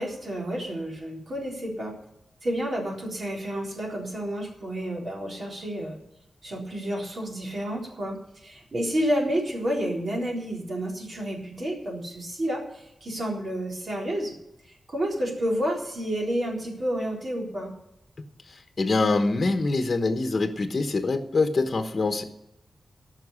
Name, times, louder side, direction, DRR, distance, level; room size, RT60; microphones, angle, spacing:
voice 1, 0.0-2.0 2.4-6.0 6.4-14.3 14.6-17.7, equal, 50° right, -1 dB, 3.9 m, -30 dB
voice 2, 18.8-22.2, left 3 dB, 45° left, 6 dB, 1.1 m, -24 dB
14.0 x 6.0 x 9.7 m, 0.85 s
wide cardioid pair, 105°, 0 cm